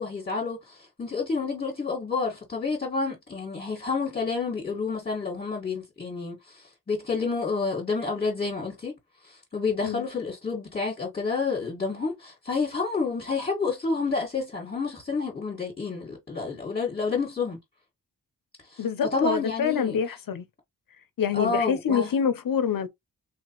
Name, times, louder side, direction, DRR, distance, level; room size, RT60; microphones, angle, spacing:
voice 1, 0.0-9.0 9.2-17.6 18.6-18.9 19.1-20.0 21.3-22.1, left 4 dB, 25° left, 1.9 m, -29 dB
voice 2, 18.8-20.4 21.2-22.9, left 7 dB, 60° left, 0.9 m, -26 dB
3.4 x 3.0 x 3.0 m
cardioid pair, 65°, 37 cm